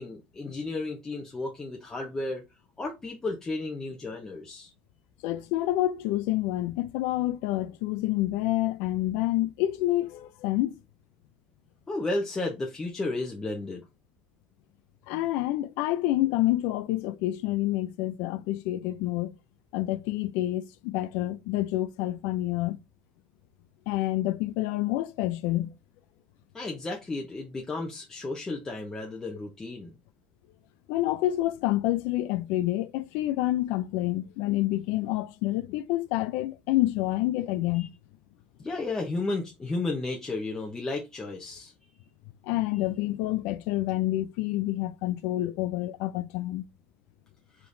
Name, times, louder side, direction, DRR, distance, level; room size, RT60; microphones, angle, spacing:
voice 1, 0.0-2.4 2.8-4.7 11.9-13.8 26.5-29.9 37.7-37.9 38.6-41.7, left 2 dB, 15° left, 0.8 m, -33 dB
voice 2, 5.2-10.8 15.1-19.3 19.7-22.8 23.9-25.7 30.9-37.9 42.4-46.6, left 15 dB, 75° left, 0.4 m, -28 dB
4.7 x 3.6 x 2.6 m
cardioid pair, 145°, 4 cm